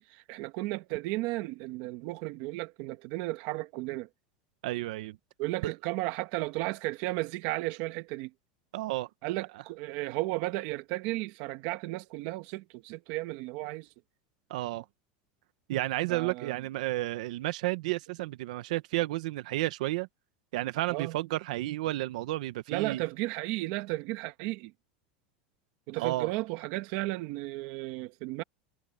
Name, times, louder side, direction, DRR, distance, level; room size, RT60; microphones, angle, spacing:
voice 1, 0.0-4.1 5.4-8.3 9.2-13.9 16.1-16.5 20.9-21.1 22.7-24.7 25.9-28.4, right 20 dB, 45° right, 1.2 m, -34 dB
voice 2, 4.6-5.2 5.6-5.7 8.7-9.1 14.5-14.8 15.7-20.1 20.5-23.0 26.0-26.3, right 17 dB, 70° right, 1.0 m, -32 dB
supercardioid pair, 180°, 4 cm